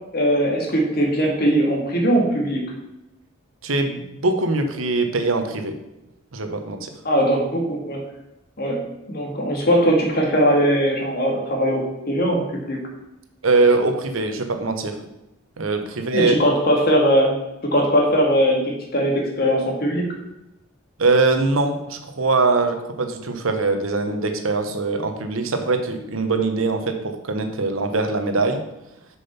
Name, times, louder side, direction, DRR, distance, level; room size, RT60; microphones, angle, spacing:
voice 1, 0.1-2.6 7.0-8.0 8.6-8.8 9.1-12.8 16.1-17.3 17.7-20.1, equal, 50° left, 0 dB, 2.1 m, -20 dB
voice 2, 3.6-5.7 6.3-6.9 13.4-15.0 15.6-16.4 21.0-28.6, right 3 dB, 90° right, 7 dB, 1.1 m, -22 dB
6.8 x 6.2 x 5.7 m, 0.93 s
head